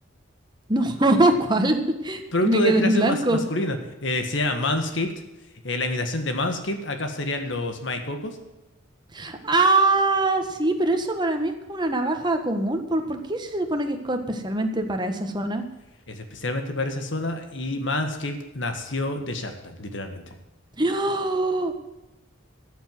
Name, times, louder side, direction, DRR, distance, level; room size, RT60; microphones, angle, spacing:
voice 1, 0.7-3.4 9.1-15.6 20.8-21.7, right 2 dB, 20° right, 5 dB, 1.5 m, -23 dB
voice 2, 2.3-5.1 5.6-8.4 16.1-20.2, left 1 dB, 65° left, 6 dB, 1.8 m, -27 dB
14.0 x 7.3 x 7.6 m, 0.99 s
head